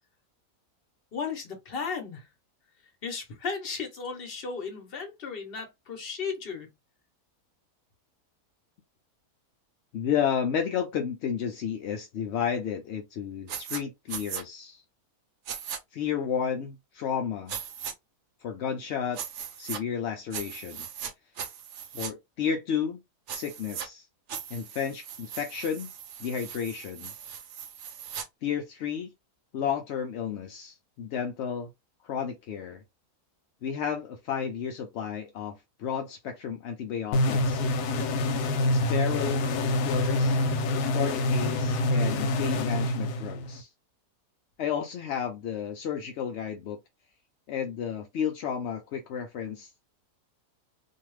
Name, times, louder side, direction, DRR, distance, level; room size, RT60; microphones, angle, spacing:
voice 1, 1.1-2.3 3.0-6.7, left 5 dB, 45° left, 1.0 m, -35 dB
voice 2, 9.9-14.8 15.9-17.6 18.4-19.2 19.6-20.9 21.9-23.0 23.3-24.1 24.5-25.9 26.2-27.1 28.4-29.1 29.5-31.7 32.0-32.8 33.6-37.6 38.7-40.4 40.9-43.7 44.6-46.8 47.5-49.7, left 8 dB, 65° left, 0.6 m, -32 dB
sound 1, 13.5-13.8 14.1-14.4 15.5-15.8 17.5-17.9 19.1-19.8 20.3-21.1 21.4-22.1 23.3-23.9 24.3-28.3, right 8 dB, 60° right, 0.8 m, -38 dB
sound 2, 37.1-43.6, left 1 dB, 90° left, 1.1 m, -26 dB
2.7 x 2.3 x 3.1 m
omnidirectional pair, 1.6 m